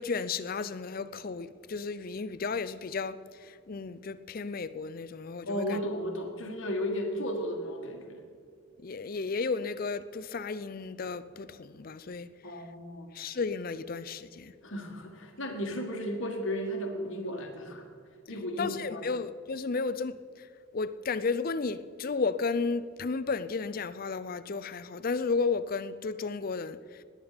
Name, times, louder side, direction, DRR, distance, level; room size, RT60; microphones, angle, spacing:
voice 1, 0.0-5.8 8.8-12.3 13.1-14.5 18.6-20.5 20.7-26.8, left 4 dB, 45° left, 0.5 m, -33 dB
voice 2, 5.5-8.2 12.4-13.1 14.6-17.8 18.3-19.0, equal, 65° left, 1.9 m, -34 dB
19.5 x 9.0 x 5.1 m
head